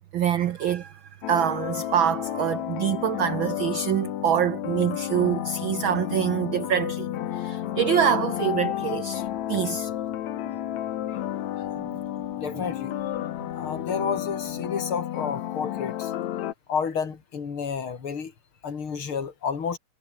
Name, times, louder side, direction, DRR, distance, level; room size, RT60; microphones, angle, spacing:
voice 1, 0.1-0.9 1.3-7.1 7.3-9.9 11.8-11.9, right 9 dB, 90° right, 1.1 m, -25 dB
sound 1, 1.2-16.5, left 12 dB, 70° left, 2.5 m, -31 dB
voice 2, 11.1-11.8 12.4-12.9 13.5-16.1 16.7-18.3 18.6-19.8, left 6 dB, 45° left, 3.5 m, -31 dB
omnidirectional pair, 3.3 m